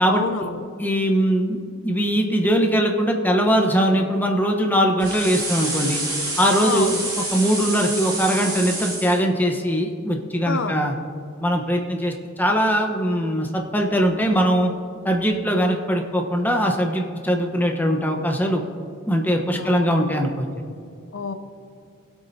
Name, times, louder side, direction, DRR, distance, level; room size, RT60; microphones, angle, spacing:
voice 1, 0.0-0.6 6.6-7.1 10.5-10.8 19.5-20.1 21.1-21.3, left 4 dB, 65° left, 9 dB, 0.6 m, -28 dB
voice 2, 0.8-6.0 6.4-10.9 11.4-14.7 15.0-18.6 19.0-20.5, equal, 10° left, 2 dB, 1.0 m, -21 dB
sound 1, 5.0-9.2, right 2 dB, 20° right, 2.3 m, -28 dB
21.0 x 8.5 x 2.8 m, 2.3 s
head